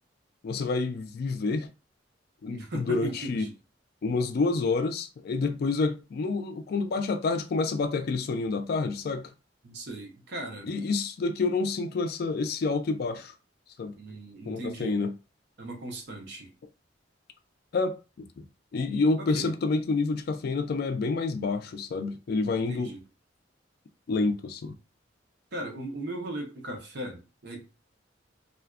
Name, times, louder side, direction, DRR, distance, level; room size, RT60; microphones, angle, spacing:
voice 1, 0.4-1.7 2.4-3.5 4.0-9.3 10.6-13.3 13.8-13.9 14.5-15.2 17.7-18.4 18.7-22.9 24.1-24.7, left 3 dB, 55° left, 0.3 m, -28 dB
voice 2, 2.5-3.5 9.6-10.7 14.0-15.0 15.6-16.5 19.2-19.5 22.5-23.0 25.5-27.6, right 1 dB, 60° right, 0.7 m, -38 dB
2.4 x 2.2 x 2.3 m
head